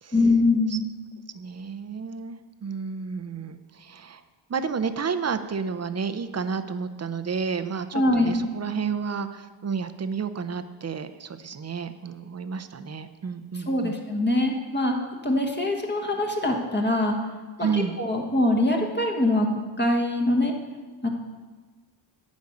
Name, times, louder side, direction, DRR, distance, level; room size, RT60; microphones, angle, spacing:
voice 1, 0.1-0.9 7.9-8.4 13.5-15.0 15.2-17.2 17.6-20.5 21.0-21.1, left 1 dB, 25° left, 1 dB, 1.3 m, -23 dB
voice 2, 1.3-4.2 4.5-14.0 17.6-18.0, right 6 dB, 35° right, 11 dB, 0.6 m, -31 dB
11.5 x 5.3 x 8.3 m, 1.4 s
wide cardioid pair, 140°, 46 cm